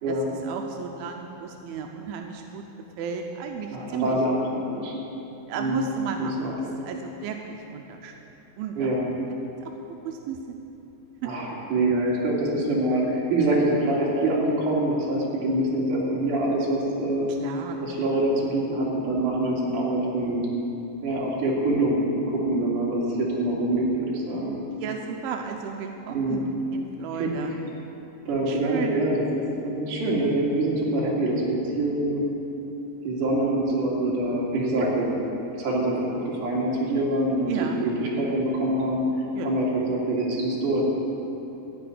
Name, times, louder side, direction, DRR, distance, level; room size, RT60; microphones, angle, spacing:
voice 1, 0.4-2.6 3.0-4.2 5.5-6.5 6.8-8.1 8.6-8.9 9.6-9.7 10.0-10.6 11.2-11.3 17.4-17.8 24.8-27.5 28.5-29.0 37.5-37.8 39.3-39.5, right 7 dB, 85° right, 3 dB, 2.2 m, -34 dB
voice 2, 3.7-4.9 5.6-5.8 6.2-6.8 8.7-9.1 11.2-17.3 17.8-20.5 21.0-24.6 26.1-26.4 27.2-27.3 28.3-29.2 29.6-32.2 33.0-35.2 35.6-39.0 39.4-40.8, right 1 dB, 50° right, -4 dB, 3.3 m, -25 dB
15.0 x 5.6 x 9.5 m, 3.0 s
omnidirectional pair, 5.0 m